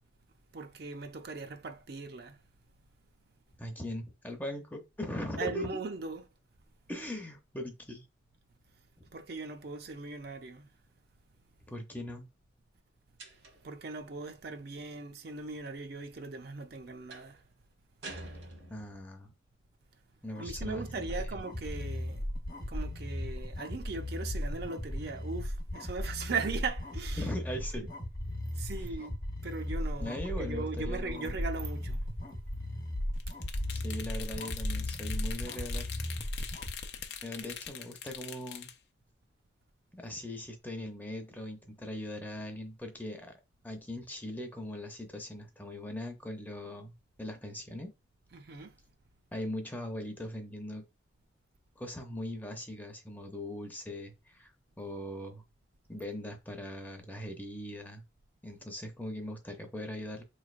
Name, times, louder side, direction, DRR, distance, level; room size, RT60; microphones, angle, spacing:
voice 1, 0.5-2.4 5.4-6.3 9.1-10.7 13.6-17.4 20.4-22.2 22.7-27.3 28.5-32.0 48.3-48.7, right 4 dB, 55° right, 0.5 m, -39 dB
voice 2, 3.6-5.8 6.9-8.1 11.7-12.3 18.7-19.3 20.2-21.4 27.2-27.8 28.7-28.8 30.0-31.4 33.7-35.9 37.2-38.7 39.9-43.3 43.6-47.9 49.3-50.8 51.8-54.5 54.8-55.4 55.9-58.0 58.4-60.2, left 1 dB, 10° left, 0.6 m, -40 dB
sound 1, 13.2-13.8 17.1-17.4 18.0-19.1, right 2 dB, 75° right, 1.2 m, -46 dB
sound 2, 20.3-36.7, left 1 dB, 50° left, 1.0 m, -36 dB
sound 3, 33.2-38.7, left 8 dB, 65° left, 0.5 m, -43 dB
4.4 x 3.2 x 2.4 m
head